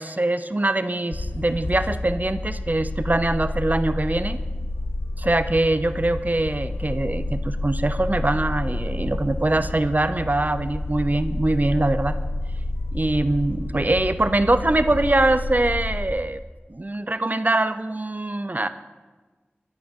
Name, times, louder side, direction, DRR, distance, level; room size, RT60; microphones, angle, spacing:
voice 1, 0.0-4.4 5.2-12.2 12.9-16.4 16.7-18.7, right 2 dB, 45° right, 12 dB, 0.6 m, -23 dB
sound 1, 1.1-16.0, left 2 dB, 85° left, 0.9 m, -29 dB
15.0 x 10.5 x 6.8 m, 1.3 s
wide cardioid pair, 50°, 4 cm